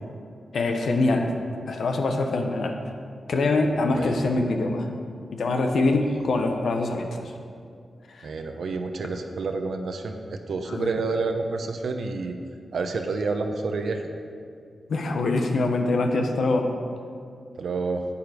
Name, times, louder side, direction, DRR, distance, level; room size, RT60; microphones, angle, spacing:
voice 1, 0.5-1.3 1.7-2.9 3.3-4.9 5.3-7.2 8.1-8.3 10.7-10.9 14.9-16.7, left 2 dB, 75° left, 4 dB, 1.0 m, -24 dB
voice 2, 8.2-12.4 12.7-14.0 17.6-18.0, right 4 dB, 75° right, 5 dB, 0.8 m, -29 dB
10.5 x 8.7 x 5.1 m, 2.3 s
wide cardioid pair, 120°, 0 cm